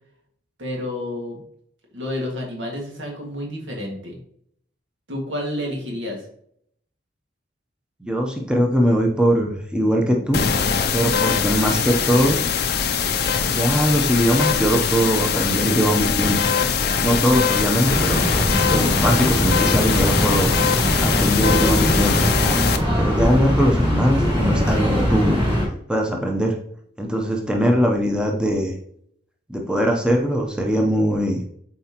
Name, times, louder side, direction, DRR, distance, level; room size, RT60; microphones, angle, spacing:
voice 1, 0.6-1.4 1.9-4.2 5.1-6.3, left 1 dB, 85° right, 0 dB, 1.9 m, -30 dB
voice 2, 8.0-10.4 10.9-12.4 13.5-16.5 17.0-18.3 18.7-20.6 21.0-22.2 23.0-25.4 25.9-26.6 27.0-28.7 29.5-31.4, equal, 5° right, 1 dB, 0.7 m, -21 dB
sound 1, 10.3-22.8, left 6 dB, 55° left, 0.5 m, -22 dB
sound 2, 17.8-25.6, equal, 30° right, 2.4 m, -22 dB
7.6 x 4.3 x 3.0 m, 0.66 s
head